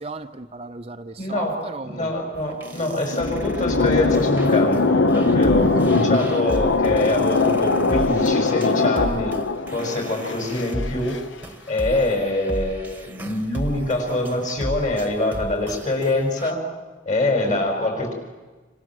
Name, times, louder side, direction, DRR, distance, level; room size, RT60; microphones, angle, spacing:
voice 1, 0.0-2.1 17.4-17.7, right 2 dB, 30° right, 7 dB, 0.8 m, -35 dB
voice 2, 1.2-1.6 1.9-9.3 9.7-11.2 11.7-16.6 17.1-18.1, left 2 dB, 40° left, 3 dB, 6.0 m, -24 dB
sound 1, 2.3-16.5, equal, 10° right, 1.4 m, -34 dB
sound 2, 2.7-11.2, left 3 dB, 80° left, 1.1 m, -21 dB
27.0 x 26.0 x 7.7 m, 1.3 s
head